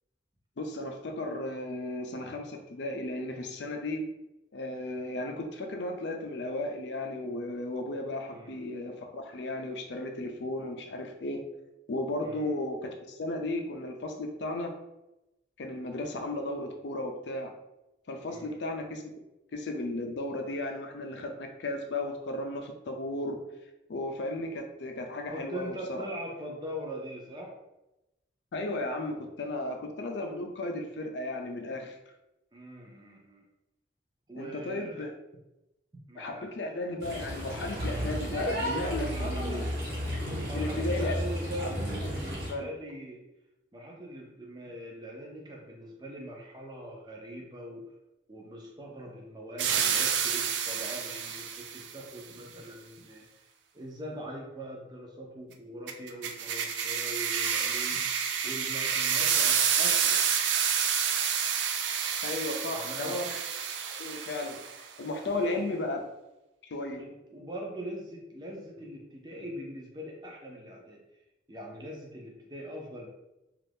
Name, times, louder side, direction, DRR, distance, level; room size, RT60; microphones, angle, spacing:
voice 1, 0.6-4.0 4.5-11.4 11.9-14.7 15.6-17.5 18.1-19.0 19.5-23.4 23.9-26.0 28.5-32.0 34.3-35.1 36.2-39.7 40.5-41.2 41.6-41.7 42.5-42.7 62.2-63.4 64.0-66.0 66.6-67.0, left 2 dB, 75° left, 4 dB, 0.5 m, -35 dB
voice 2, 8.3-8.6 12.2-12.5 18.3-18.5 25.3-27.5 32.5-33.4 34.3-35.0 36.1-36.5 39.0-39.7 40.4-43.2 43.7-47.8 48.3-53.2 53.7-60.2 62.7-63.2 65.3-65.8 66.9-71.0 71.5-73.1, equal, 25° right, -1 dB, 0.6 m, -42 dB
sound 1, 37.0-42.5, equal, 55° right, 1.1 m, -33 dB
sound 2, 49.6-51.9 55.9-64.8, right 7 dB, 85° right, 0.3 m, -29 dB
2.6 x 2.4 x 3.4 m, 0.95 s
head